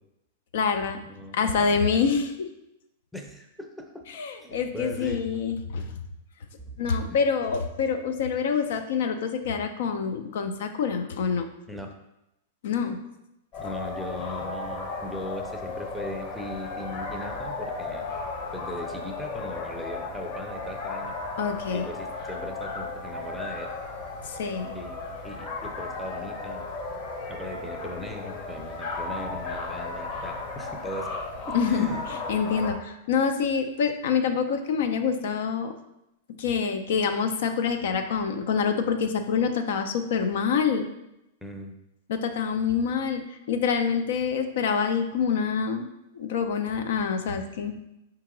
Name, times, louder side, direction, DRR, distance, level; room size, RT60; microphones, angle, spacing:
voice 1, 0.5-1.0 1.3-2.5 4.1-5.8 6.8-11.5 12.6-13.0 21.4-21.8 24.2-24.8 31.5-32.0 32.3-35.7 36.4-40.9 42.1-45.9 46.1-47.8, left 6 dB, 70° left, 6 dB, 0.4 m, -26 dB
voice 2, 1.0-1.9 3.1-4.0 4.4-5.2 5.8-5.9 6.6-6.7 7.1-7.2 11.7-11.9 13.6-18.1 18.5-21.2 21.7-23.7 24.7-26.7 27.3-31.1 31.5-32.0 41.4-41.7, left 1 dB, ahead, 2 dB, 0.5 m, -38 dB
sound 1, 13.5-32.7, left 3 dB, 45° left, 1.1 m, -35 dB
4.5 x 2.8 x 3.7 m, 0.87 s
hypercardioid pair, 115°, 0 cm